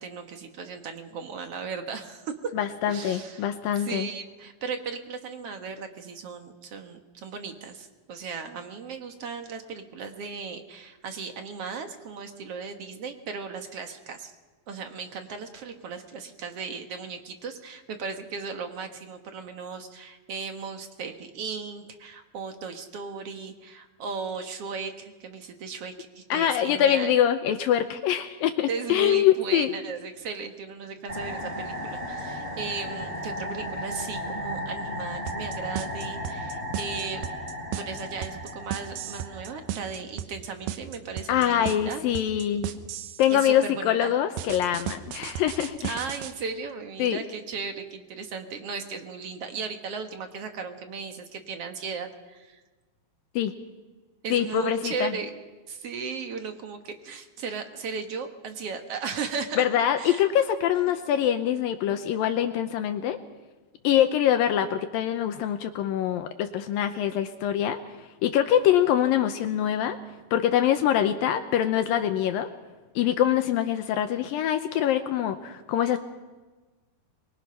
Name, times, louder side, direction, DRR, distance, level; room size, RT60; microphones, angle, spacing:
voice 1, 0.0-2.5 2.9-3.5 3.7-14.3 14.7-27.2 28.7-37.3 37.7-42.0 43.3-44.1 45.8-52.6 54.2-55.3 55.7-59.7 60.0-60.3, right 5 dB, 55° right, 6 dB, 1.9 m, -36 dB
voice 2, 2.5-4.1 26.3-29.7 41.3-42.7 43.2-46.0 47.0-47.2 53.4-53.5 54.3-55.1 59.6-63.2 63.8-67.8 68.2-70.0 70.3-72.5 73.0-76.0, left 10 dB, 75° left, 8 dB, 2.4 m, -24 dB
sound 1, 31.1-39.9, equal, 20° right, 8.1 m, -35 dB
sound 2, 35.3-43.3 44.4-46.3, right 10 dB, 90° right, 3.1 m, -35 dB
24.5 x 22.5 x 5.8 m, 1.2 s
omnidirectional pair, 4.4 m